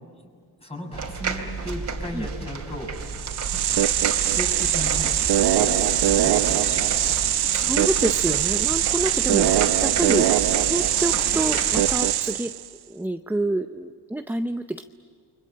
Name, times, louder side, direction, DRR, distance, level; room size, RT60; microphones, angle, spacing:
voice 1, 0.6-3.0 4.3-5.0 5.5-6.6 6.9-7.2 11.8-12.2, left 1 dB, 15° left, 1 dB, 6.7 m, -36 dB
sound 1, 0.9-12.0, right 5 dB, 45° right, 3.0 m, -32 dB
sound 2, 3.1-12.7, right 11 dB, 70° right, 0.9 m, -22 dB
sound 3, 3.5-11.7, right 2 dB, 25° right, 3.8 m, -39 dB
voice 2, 7.5-10.4 10.7-12.5 12.9-14.8, right 1 dB, 5° right, 8 dB, 0.6 m, -28 dB
29.5 x 24.0 x 7.6 m, 2.1 s
cardioid pair, 125°, 40 cm